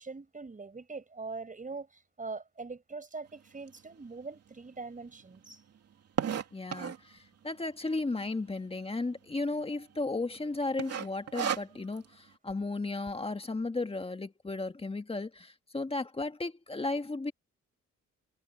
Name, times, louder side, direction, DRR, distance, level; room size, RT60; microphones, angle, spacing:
voice 1, 0.0-5.6, right 4 dB, 25° right, 5.9 m, -42 dB
sound 1, 3.7-3.8 4.4-4.5 4.6-4.7 5.0-7.1 7.8-8.2 8.5-8.6 8.8-8.9 9.5-9.8 10.1-10.4 10.8-12.1, right 8 dB, 55° right, 2.8 m, -34 dB
voice 2, 6.5-17.3, left 3 dB, 20° left, 1.7 m, -35 dB
cardioid pair, 90°, 30 cm